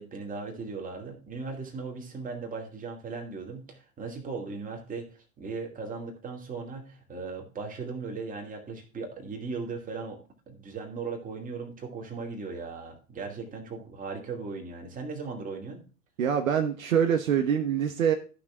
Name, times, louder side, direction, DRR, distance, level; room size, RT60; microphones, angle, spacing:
voice 1, 0.0-10.2 10.5-15.8, right 4 dB, 20° right, 2.6 m, -38 dB
voice 2, 16.2-18.1, right 8 dB, 60° right, 1.2 m, -25 dB
14.0 x 5.9 x 3.6 m
figure-of-eight pair, 95°, 44 cm